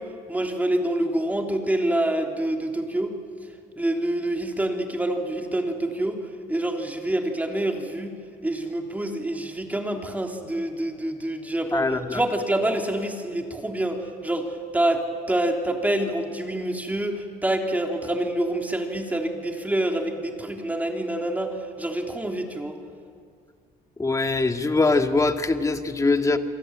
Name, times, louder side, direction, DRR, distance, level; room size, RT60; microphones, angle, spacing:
voice 1, 0.0-3.2 3.8-22.8, right 1 dB, 10° right, 2 dB, 3.5 m, -27 dB
voice 2, 11.7-12.2 24.0-26.4, left 3 dB, 20° left, 6 dB, 1.9 m, -22 dB
28.0 x 23.0 x 8.9 m, 2.2 s
cardioid pair, 110°, 17 cm